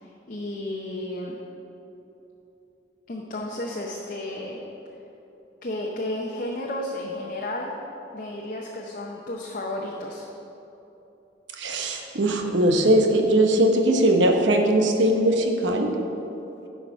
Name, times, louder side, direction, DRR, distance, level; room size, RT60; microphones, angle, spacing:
voice 1, 0.0-1.4 3.1-4.6 5.6-7.7 8.1-10.3, left 1 dB, 45° left, -1 dB, 0.7 m, -32 dB
voice 2, 11.6-15.9, right 1 dB, 80° right, 3 dB, 0.9 m, -20 dB
10.5 x 4.7 x 5.6 m, 3.0 s
head